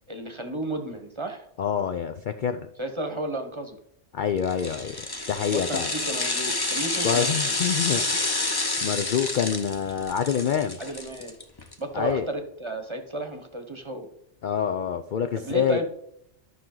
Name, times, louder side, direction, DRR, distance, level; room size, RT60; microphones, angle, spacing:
voice 1, 0.1-1.5 2.8-3.8 5.5-7.5 10.8-11.4 11.8-14.1 15.3-15.9, right 1 dB, 25° right, 6 dB, 1.0 m, -33 dB
voice 2, 1.6-2.7 4.1-5.0 5.3-5.9 7.0-8.3 8.8-10.8 11.9-12.3 14.4-15.8, left 7 dB, 60° left, 8 dB, 0.5 m, -26 dB
sound 1, 4.4-11.7 12.1-12.2, left 2 dB, 20° left, 0.8 m, -29 dB
12.0 x 6.0 x 3.8 m, 0.76 s
omnidirectional pair, 1.3 m